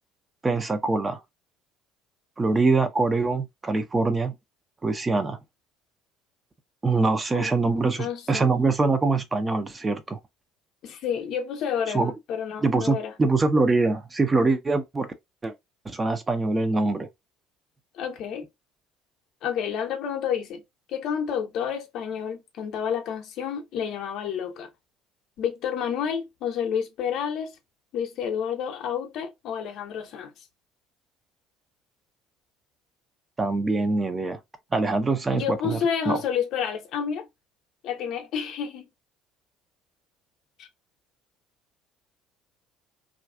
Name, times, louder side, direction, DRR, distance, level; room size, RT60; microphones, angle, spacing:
voice 1, 0.4-1.2 2.4-4.3 4.8-5.4 6.8-10.2 11.9-12.1 12.6-15.1 15.4-15.5 15.9-17.1 33.4-34.4 34.7-35.8 36.1-36.2, right 3 dB, 20° right, 0.5 m, -24 dB
voice 2, 7.3-8.5 10.8-13.1 17.9-18.4 19.4-20.6 20.9-24.7 25.4-27.5 27.9-30.3 35.3-37.3 37.8-38.9 40.6-40.7, left 7 dB, 55° left, 0.6 m, -30 dB
2.4 x 2.3 x 2.2 m
figure-of-eight pair, 60°, 0 cm